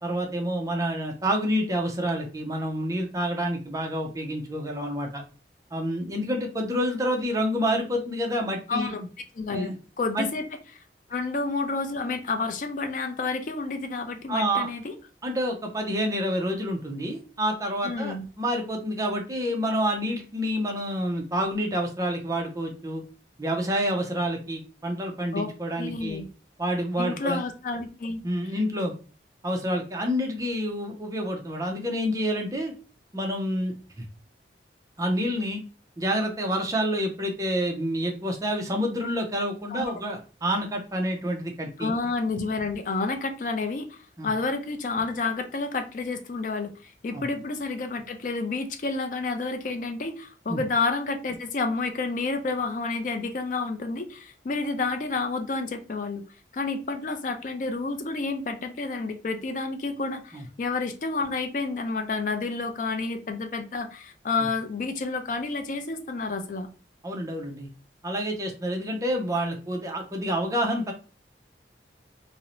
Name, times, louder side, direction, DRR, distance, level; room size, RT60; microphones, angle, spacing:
voice 1, 0.0-5.2 5.7-9.1 9.5-9.8 10.1-10.3 14.3-14.7 15.2-23.0 23.4-26.2 26.6-27.4 28.2-28.9 29.4-32.7 33.1-34.0 35.0-35.6 36.0-41.9 44.2-44.3 47.1-47.2 50.5-50.6 60.3-60.4 67.0-67.7 68.0-70.9, equal, 20° right, 2 dB, 0.5 m, -28 dB
voice 2, 8.7-9.0 9.4-10.4 11.1-14.9 17.8-18.3 25.3-25.5 25.8-26.3 27.0-28.2 39.7-39.9 41.8-56.2 56.5-66.7, left 3 dB, 45° left, 7 dB, 0.4 m, -30 dB
2.6 x 2.0 x 2.8 m, 0.35 s
head